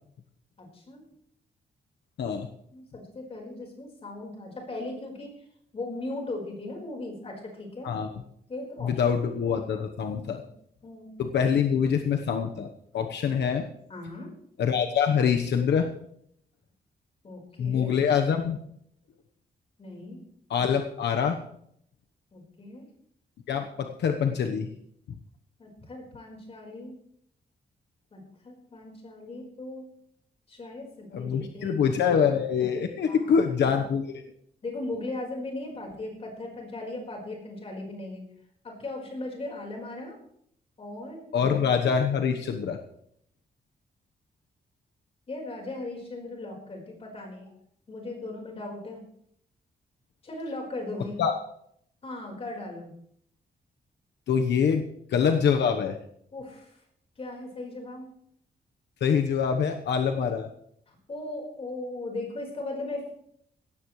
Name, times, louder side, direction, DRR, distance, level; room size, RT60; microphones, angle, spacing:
voice 1, 0.6-1.0 2.3-2.4 2.7-5.4 5.7-7.9 8.5-9.0 10.8-11.2 13.9-14.3 17.2-17.9 19.8-20.2 22.3-22.9 25.6-26.9 28.1-29.9 30.5-31.7 33.1-33.9 34.6-38.3 38.6-40.2 40.8-41.5 45.3-47.5 47.9-49.0 50.2-51.2 52.0-52.9 56.3-56.8 57.2-58.1 60.9-63.1, left 2 dB, 35° left, 0 dB, 4.6 m, -38 dB
voice 2, 8.8-10.4 11.2-12.7 12.9-13.6 14.6-15.9 17.6-18.6 20.5-21.4 23.5-24.7 31.1-34.1 41.3-42.8 51.2-51.3 54.3-54.8 55.1-56.0 59.0-60.5, left 7 dB, 80° left, 5 dB, 1.1 m, -25 dB
17.0 x 14.5 x 3.2 m, 0.69 s
wide cardioid pair, 165°, 18 cm